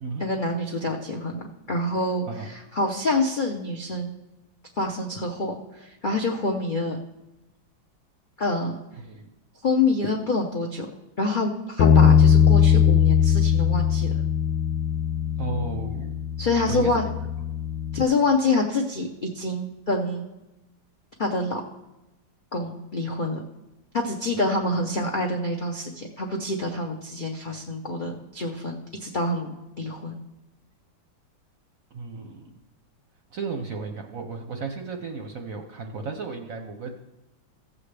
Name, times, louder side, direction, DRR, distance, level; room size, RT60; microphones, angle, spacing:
voice 1, 0.2-4.1 4.8-7.0 8.4-8.8 9.6-10.9 11.2-14.1 16.4-17.1 17.9-20.3 21.2-21.6 22.5-23.4 23.9-30.2, left 2 dB, 65° left, 1 dB, 0.4 m, -26 dB
Bass guitar, 11.8-18.0, left 8 dB, 85° left, 1.5 m, -20 dB
voice 2, 15.4-16.2 16.7-16.9 31.9-32.5 33.3-37.1, right 4 dB, 60° right, 4 dB, 0.9 m, -33 dB
15.5 x 7.5 x 3.3 m, 0.99 s
omnidirectional pair, 2.2 m